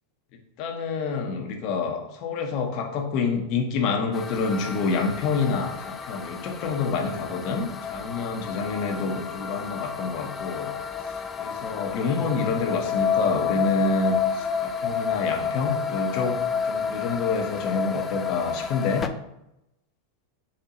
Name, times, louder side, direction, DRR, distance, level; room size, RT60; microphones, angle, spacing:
voice 1, 0.6-10.7 11.0-16.4 16.6-19.1, left 4 dB, 45° left, 3 dB, 0.8 m, -28 dB
sound 1, 4.1-19.1, left 7 dB, 25° left, 0.3 m, -30 dB
4.4 x 4.3 x 2.6 m, 0.87 s
figure-of-eight pair, 90°, 0 cm